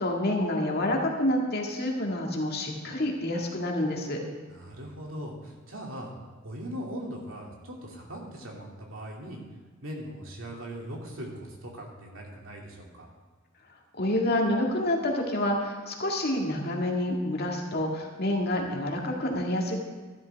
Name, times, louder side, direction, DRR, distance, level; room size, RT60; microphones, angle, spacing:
voice 1, 0.0-4.2 14.0-19.8, left 1 dB, 50° left, 0 dB, 1.9 m, -28 dB
voice 2, 4.5-6.1 6.4-9.4 9.8-13.1, equal, 70° right, -1 dB, 2.5 m, -40 dB
13.0 x 12.0 x 3.5 m, 1.4 s
head